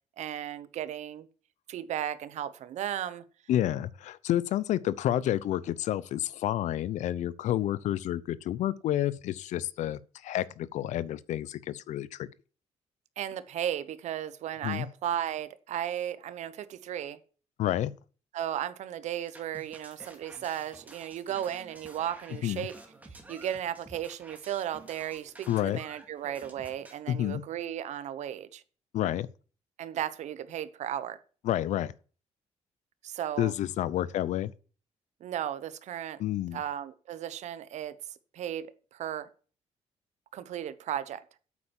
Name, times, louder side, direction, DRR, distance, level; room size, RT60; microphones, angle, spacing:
voice 1, 0.2-1.3 1.7-3.2 13.2-17.2 18.3-22.7 23.3-28.6 29.8-31.2 33.0-33.5 35.2-36.2 36.5-38.7 38.9-39.3 40.3-41.2, right 10 dB, 75° right, 1.0 m, -35 dB
voice 2, 3.5-12.3 14.6-14.9 17.6-17.9 22.4-22.7 25.5-25.8 27.1-27.4 28.9-29.3 31.4-31.9 33.4-34.5 36.2-36.6, left 12 dB, 80° left, 0.7 m, -29 dB
Otter Drummer, 19.2-26.9, right 2 dB, 15° right, 2.4 m, -51 dB
8.8 x 8.5 x 7.3 m
cardioid pair, 135°, 12 cm